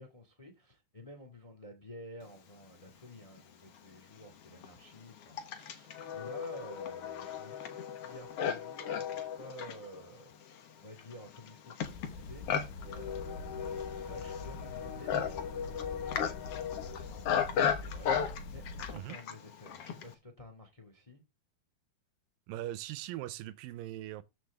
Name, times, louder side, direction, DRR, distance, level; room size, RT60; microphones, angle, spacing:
voice 1, 0.0-10.3 10.8-12.6 12.8-16.5 17.0-21.2, equal, 15° left, 1.4 m, -52 dB
Livestock farm animals working animals, 3.4-3.5 4.2-20.1, left 8 dB, 60° left, 1.8 m, -36 dB
sound 1, 11.8-19.0, left 3 dB, 80° left, 3.0 m, -45 dB
voice 2, 22.5-24.2, right 14 dB, 85° right, 2.4 m, -40 dB
13.5 x 6.3 x 3.5 m
omnidirectional pair, 4.0 m